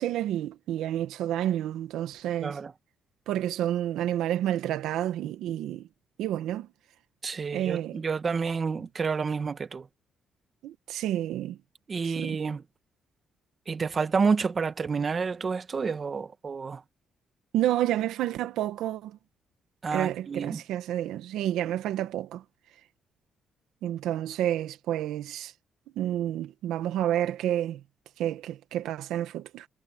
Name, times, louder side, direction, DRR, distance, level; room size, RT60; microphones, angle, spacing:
voice 1, 0.0-2.6 3.3-5.9 6.2-6.7 7.5-8.0 10.6-11.6 12.0-12.4 17.5-19.2 19.9-22.4 23.8-25.5 25.9-27.8 28.2-29.7, right 12 dB, 85° right, 1.6 m, -29 dB
voice 2, 2.4-2.7 7.2-9.9 11.9-12.6 13.7-16.8 19.8-20.6, right 5 dB, 40° right, 1.5 m, -29 dB
cardioid pair, 90°, 0 cm